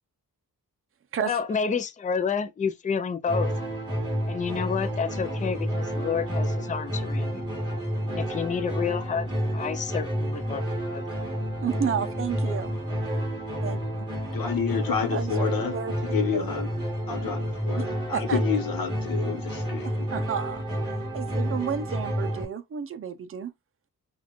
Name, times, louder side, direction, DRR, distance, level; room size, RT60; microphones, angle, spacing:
voice 1, 1.2-3.5 4.3-7.4 8.1-9.3 9.5-10.6 10.9-11.2, left 6 dB, 25° left, 0.4 m, -29 dB
sound 1, 3.3-22.4, equal, 15° right, 2.5 m, -30 dB
voice 2, 11.6-12.7 13.6-13.8 15.1-15.5 15.7-15.9 16.3-16.5 17.7-17.8 18.1-18.4 19.8-20.6 21.1-23.5, right 7 dB, 40° right, 0.6 m, -31 dB
voice 3, 14.3-16.7 17.0-19.9, left 7 dB, 80° left, 1.0 m, -29 dB
6.1 x 2.5 x 3.0 m
wide cardioid pair, 150°, 34 cm